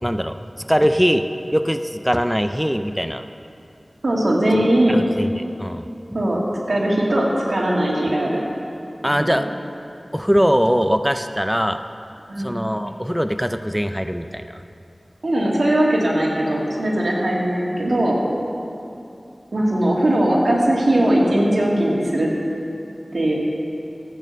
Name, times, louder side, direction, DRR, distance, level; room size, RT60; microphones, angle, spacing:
voice 1, 0.0-1.3 1.5-3.2 4.9-6.2 9.0-9.5 10.1-11.8 12.4-14.6, equal, ahead, 8 dB, 0.4 m, -21 dB
voice 2, 4.0-5.0 6.1-6.4 6.7-8.4 9.2-9.4 12.3-12.5 15.2-18.2 19.5-22.3 23.1-23.3, right 1 dB, 85° right, -3 dB, 2.4 m, -19 dB
14.0 x 8.6 x 6.6 m, 2.7 s
wide cardioid pair, 60°, 0 cm